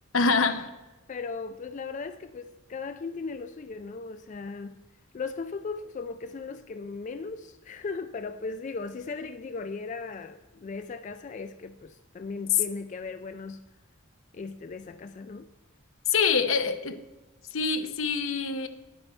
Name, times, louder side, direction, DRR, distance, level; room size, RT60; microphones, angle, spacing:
voice 1, 0.1-0.7 16.1-17.0 17.5-18.7, left 5 dB, 70° left, 0.7 m, -25 dB
voice 2, 1.1-4.8 5.1-13.6 14.3-15.5, left 4 dB, 35° left, 0.3 m, -37 dB
9.1 x 8.5 x 4.4 m
head